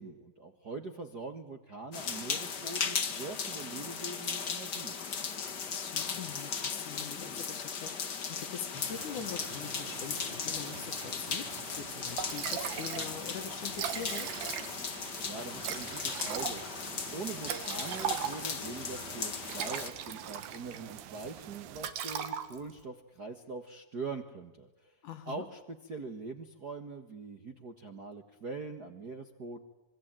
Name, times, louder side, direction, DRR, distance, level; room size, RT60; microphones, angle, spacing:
voice 1, 0.0-5.0 15.2-16.6 17.1-24.9 25.3-29.6, right 3 dB, 40° right, 5 dB, 1.4 m, -43 dB
sound 1, 1.9-19.9, left 6 dB, 40° left, 1.7 m, -37 dB
voice 2, 5.7-14.3 25.0-25.5, left 8 dB, 65° left, 10 dB, 2.9 m, -43 dB
sound 2, 8.7-21.9, right 11 dB, 65° right, 2.4 m, -48 dB
Liquid, 11.8-11.9 12.2-13.1 13.4-13.5 13.7-14.9 15.6-18.6 19.3-20.8 21.1-21.4 21.7-22.8, right 9 dB, 85° right, 3.6 m, -37 dB
26.0 x 23.5 x 9.1 m, 1.0 s
omnidirectional pair, 4.1 m